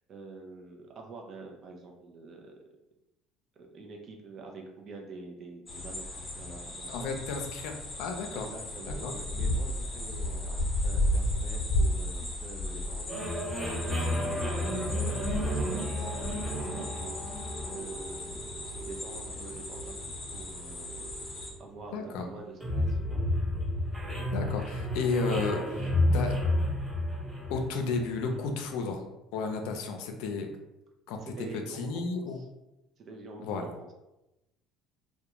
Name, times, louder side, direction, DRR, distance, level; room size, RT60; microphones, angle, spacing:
voice 1, 0.1-2.6 3.6-7.2 8.3-13.2 13.6-21.1 21.6-23.2 29.6-29.8 31.2-32.5 33.0-33.9, right 3 dB, 45° right, 2 dB, 0.5 m, -46 dB
sound 1, 5.7-21.5, left 1 dB, 25° left, 0.8 m, -34 dB
voice 2, 6.9-7.7 8.0-8.5 8.9-9.1 21.9-22.3 24.3-26.4 27.5-29.1 29.3-30.5 31.1-32.4 33.4-33.7, left 4 dB, 80° left, 4 dB, 0.4 m, -33 dB
sound 2, 13.1-28.5, left 1 dB, 10° right, 0.7 m, -32 dB
2.4 x 2.1 x 2.9 m, 0.94 s
supercardioid pair, 100°, 0 cm